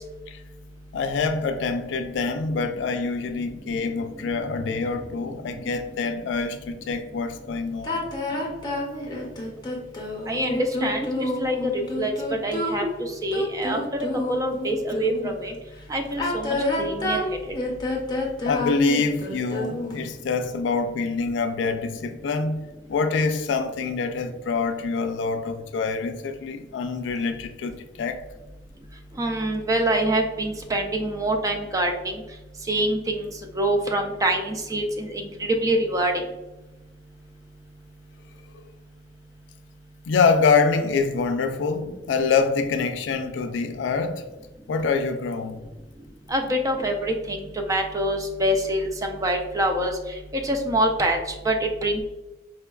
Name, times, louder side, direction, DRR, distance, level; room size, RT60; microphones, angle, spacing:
voice 1, 0.9-8.0 18.4-28.2 40.1-44.2 44.7-45.6, left 4 dB, 75° left, 0.3 m, -25 dB
sound 1, 7.8-15.4 16.1-20.1, left 2 dB, 25° left, 0.6 m, -28 dB
voice 2, 10.3-12.1 12.4-13.8 14.3-15.6 15.9-17.4 29.2-32.2 32.7-33.3 33.5-36.1 46.3-49.9 50.4-51.2 51.4-51.6 51.8-52.0, right 1 dB, 20° right, 0.3 m, -25 dB
4.2 x 2.3 x 2.2 m
head